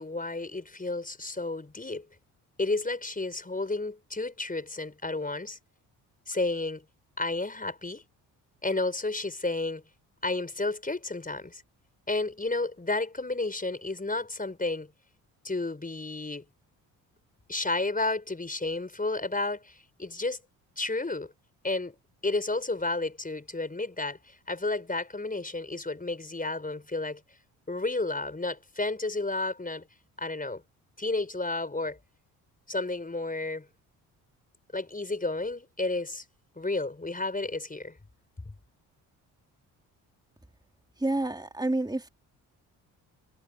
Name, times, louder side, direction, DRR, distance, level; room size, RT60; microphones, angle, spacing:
voice 1, 0.0-2.1 2.6-5.6 6.3-6.8 7.2-8.0 8.6-9.8 10.2-11.6 12.1-14.9 15.4-16.4 17.5-20.4 20.8-21.3 21.6-22.0 22.2-27.2 27.7-29.9 30.2-30.6 31.0-32.0 32.7-33.7 34.7-36.2 36.6-38.0, left 2 dB, 20° left, 5.7 m, -31 dB
voice 2, 41.0-42.1, right 2 dB, 10° right, 3.2 m, -28 dB
hypercardioid pair, 55°, 43 cm